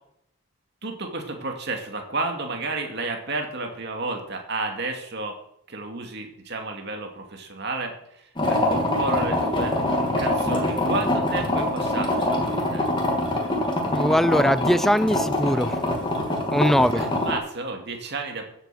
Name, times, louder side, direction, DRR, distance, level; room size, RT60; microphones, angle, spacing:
voice 1, 0.8-5.4 5.7-9.7 10.2-12.9 17.0-18.5, right 3 dB, 50° right, 3 dB, 2.5 m, -31 dB
sound 1, 8.4-17.3, left 1 dB, 25° left, 2.6 m, -24 dB
voice 2, 13.9-15.8 16.5-17.0, equal, ahead, 14 dB, 0.4 m, -21 dB
15.0 x 8.2 x 7.7 m, 0.76 s
head